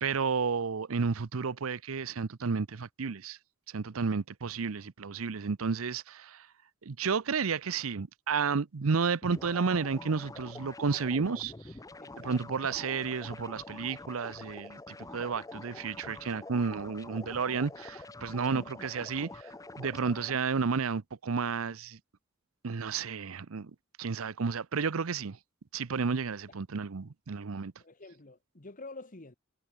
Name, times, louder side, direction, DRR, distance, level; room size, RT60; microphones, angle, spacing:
voice 1, 0.0-3.4 3.7-6.5 6.8-11.7 12.2-22.0 22.6-23.7 24.0-25.4 25.7-27.7, right 5 dB, 90° right, 0.7 m, -32 dB
sound 1, 9.2-20.3, left 2 dB, 15° left, 0.7 m, -46 dB
voice 2, 12.0-12.4 18.5-18.8 27.8-29.3, left 2 dB, 40° left, 1.5 m, -47 dB
head